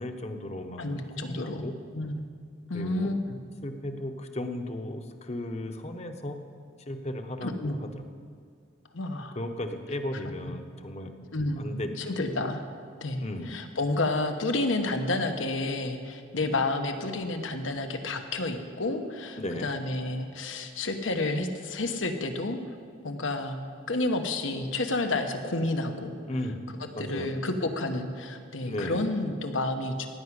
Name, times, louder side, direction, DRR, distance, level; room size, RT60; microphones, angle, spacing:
voice 1, 0.0-1.8 2.7-3.1 3.6-6.4 6.9-8.0 9.4-11.2 11.6-12.0 13.2-13.6 19.4-19.7 26.3-26.6 26.9-27.4 28.7-29.0, left 1 dB, 35° left, 6 dB, 0.9 m, -35 dB
voice 2, 0.8-1.6 1.9-2.3 2.7-3.3 7.4-7.8 8.9-9.4 11.3-11.7 12.0-12.6 13.0-22.6 23.0-23.6 23.9-26.1 26.8-30.1, left 2 dB, 85° left, 6 dB, 1.2 m, -30 dB
16.0 x 6.0 x 9.6 m, 2.2 s
head